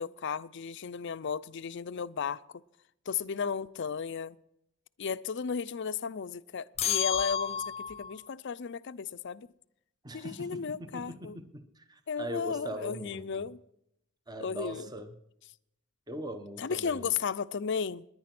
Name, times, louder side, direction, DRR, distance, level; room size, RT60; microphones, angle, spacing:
voice 1, 0.0-2.6 3.1-4.4 5.0-9.5 10.1-11.4 12.1-13.6 14.4-14.9 16.6-18.1, left 6 dB, 55° left, 0.5 m, -34 dB
sound 1, 6.8-8.1, left 8 dB, 30° left, 0.8 m, -31 dB
voice 2, 10.0-13.5 14.3-15.1 16.1-17.1, right 1 dB, 20° right, 1.0 m, -41 dB
19.5 x 10.5 x 6.0 m
head